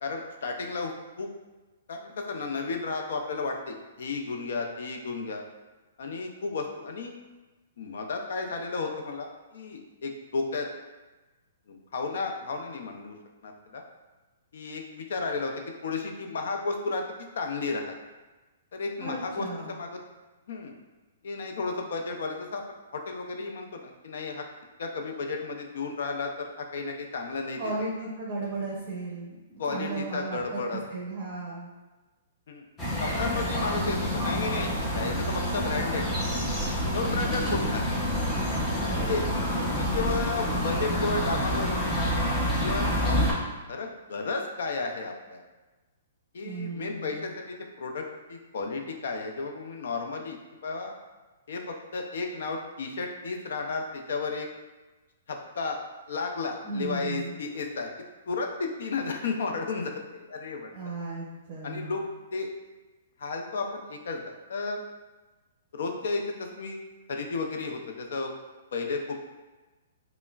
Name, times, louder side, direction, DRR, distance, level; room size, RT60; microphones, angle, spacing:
voice 1, 0.0-0.9 1.2-1.3 1.9-5.4 6.0-7.1 7.8-10.7 11.7-13.2 13.4-13.8 14.5-17.9 18.7-20.0 20.5-20.7 21.2-22.6 22.9-24.4 24.8-27.6 29.6-30.8 32.5-32.6 33.0-36.1 36.5-36.6 36.8-37.9 39.1-42.3 42.6-43.4 43.7-45.4 46.3-48.0 48.3-50.9 51.5-54.5 55.3-55.8 56.1-57.9 58.3-60.7 61.6-62.0 62.3-62.5 63.2-64.8 65.7-66.8 67.1-68.3 68.7-69.2, left 4 dB, 70° left, 3 dB, 0.5 m, -33 dB
voice 2, 19.0-19.7 27.6-31.7 37.0-37.8 38.8-39.2 46.4-47.2 56.6-57.4 60.7-61.9, right 2 dB, 25° right, -5 dB, 0.8 m, -35 dB
sound 1, 32.8-43.3, equal, 15° left, 0.7 m, -28 dB
5.3 x 2.1 x 2.3 m, 1.2 s
hypercardioid pair, 155°, 0 cm